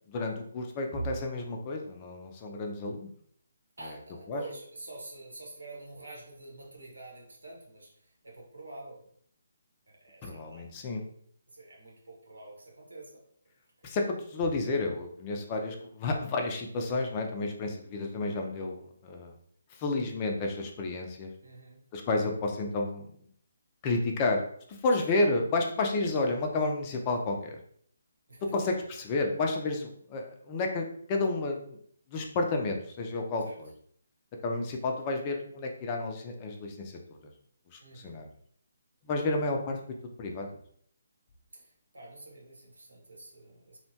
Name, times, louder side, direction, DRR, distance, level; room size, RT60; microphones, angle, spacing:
voice 1, 0.1-3.1 4.3-4.4 10.2-11.1 13.8-19.4 19.7-21.3 21.9-23.1 23.8-24.4 24.7-27.6 28.5-31.8 32.1-33.7 34.4-37.2 37.7-38.3 39.1-39.8 40.2-40.6, left 2 dB, 30° left, 2 dB, 0.4 m, -31 dB
voice 2, 3.8-9.1 9.9-10.7 11.5-13.2 13.8-13.9 21.4-21.8 25.0-25.1 28.3-28.4 33.5-33.6 37.8-38.3 41.5-43.8, right 2 dB, 85° right, -2 dB, 1.2 m, -47 dB
2.8 x 2.1 x 2.7 m, 0.63 s
figure-of-eight pair, 150°, 0 cm